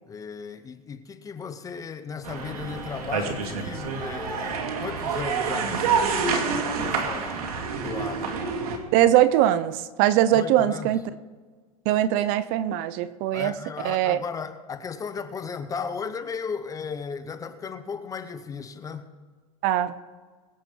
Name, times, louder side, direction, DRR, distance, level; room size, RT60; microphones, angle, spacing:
voice 1, 0.1-6.1 6.7-7.5 7.8-8.4 10.3-10.9 13.3-19.1, left 6 dB, 15° left, 11 dB, 0.8 m, -35 dB
sound 1, 2.2-8.8, right 5 dB, 75° right, 2.2 m, -28 dB
sound 2, 2.3-9.1, right 1 dB, 20° right, 3.9 m, -44 dB
voice 2, 8.9-11.0 11.9-13.5 13.8-14.2 19.6-19.9, right 12 dB, 45° right, 15 dB, 0.7 m, -21 dB
22.5 x 7.8 x 4.5 m, 1.5 s
hypercardioid pair, 125°, 19 cm